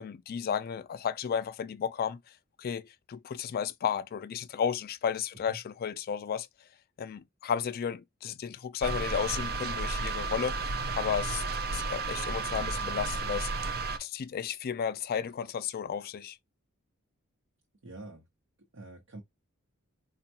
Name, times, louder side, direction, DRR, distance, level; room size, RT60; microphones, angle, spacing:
voice 1, 0.0-6.5 7.0-11.4 11.7-16.4, left 7 dB, 45° left, 0.3 m, -33 dB
sound 1, 8.8-14.0, right 3 dB, 45° right, 0.4 m, -33 dB
voice 2, 17.8-18.3 18.6-19.2, right 2 dB, 70° right, 0.9 m, -46 dB
4.3 x 2.3 x 2.8 m
head